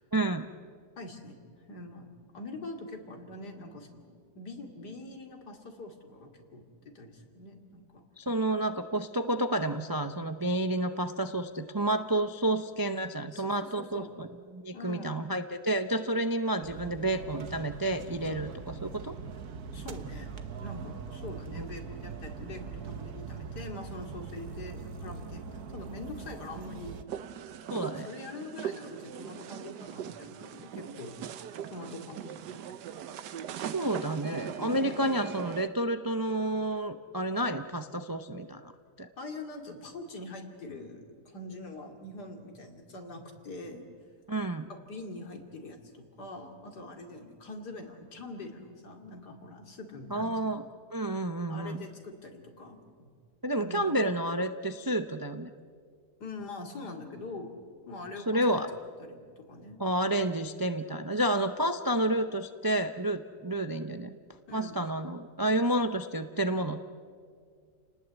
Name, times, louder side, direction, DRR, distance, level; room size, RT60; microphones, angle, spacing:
voice 1, 0.1-0.5 8.2-14.3 14.5-19.1 21.6-21.7 27.7-28.1 33.7-38.7 39.0-39.1 44.3-44.7 50.1-50.6 50.9-51.8 53.4-55.5 58.3-58.7 59.8-64.2 64.5-66.8, right 1 dB, 30° right, 8 dB, 0.4 m, -30 dB
voice 2, 1.0-1.4 1.7-2.1 2.3-8.0 13.3-14.1 14.7-15.1 19.7-20.3 20.6-27.0 27.9-31.1 31.7-32.6 39.2-43.9 44.7-50.4 51.5-53.1 53.6-53.9 56.2-57.6 57.9-58.6 59.0-59.8 64.5-64.8, left 2 dB, 80° left, 3 dB, 3.2 m, -44 dB
sound 1, 16.6-27.0, right 5 dB, 65° right, 1.6 m, -42 dB
sound 2, 27.1-35.7, right 9 dB, 85° right, 1.5 m, -40 dB
30.0 x 19.5 x 8.2 m, 2.1 s
omnidirectional pair, 1.7 m